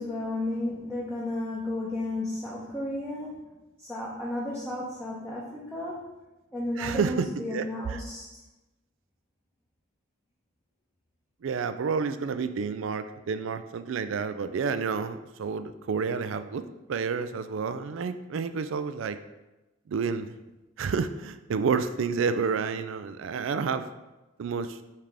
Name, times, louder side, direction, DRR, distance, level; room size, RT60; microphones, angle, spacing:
voice 1, 0.0-3.5 3.8-6.1 6.5-8.3, left 1 dB, 5° left, -8 dB, 0.9 m, -33 dB
voice 2, 6.8-8.0 11.4-16.6 16.9-19.2 19.9-20.3 20.8-23.9 24.4-24.8, right 5 dB, 70° right, 11 dB, 0.4 m, -30 dB
5.7 x 3.4 x 4.9 m, 1.0 s
head